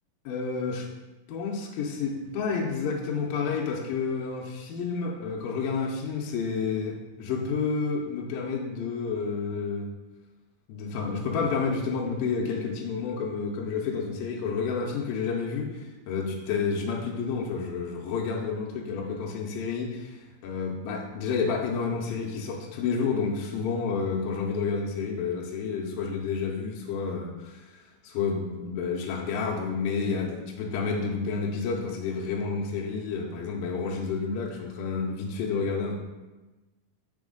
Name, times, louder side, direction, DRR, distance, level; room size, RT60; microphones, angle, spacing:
voice 1, 0.3-0.9 1.3-9.9 10.7-35.9, left 5 dB, 80° left, -1 dB, 2.3 m, -30 dB
6.1 x 4.2 x 3.8 m, 1.1 s
omnidirectional pair, 4.2 m